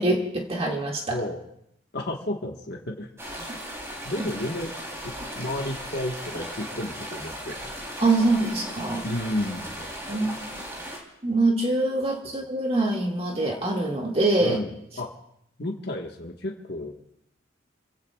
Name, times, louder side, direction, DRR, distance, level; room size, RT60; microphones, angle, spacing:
voice 1, 0.0-1.2 8.0-9.0 10.1-10.3 11.2-14.6, right 2 dB, 30° right, 0 dB, 2.1 m, -24 dB
voice 2, 1.1-1.4 1.9-3.1 4.0-4.7 5.0-7.8 9.0-10.4 14.4-14.7 15.0-15.1 15.6-16.9, left 1 dB, 55° left, 0 dB, 1.4 m, -32 dB
sound 1, 3.2-11.0, equal, 15° right, 3.3 m, -37 dB
29.5 x 16.0 x 2.4 m, 0.75 s
head